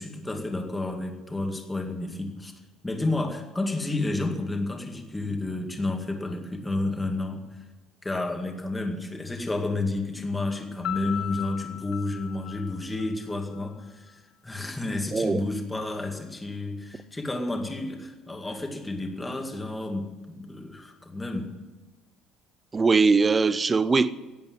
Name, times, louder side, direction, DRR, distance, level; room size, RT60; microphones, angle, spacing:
voice 1, 0.0-2.5 2.8-7.4 8.0-21.5, left 2 dB, 10° left, 2.0 m, -31 dB
Piano, 10.8-13.7, left 12 dB, 55° left, 1.5 m, -37 dB
voice 2, 15.1-15.5 22.7-24.1, right 4 dB, 15° right, 0.5 m, -21 dB
16.5 x 8.6 x 9.5 m
cardioid pair, 155°, 0 cm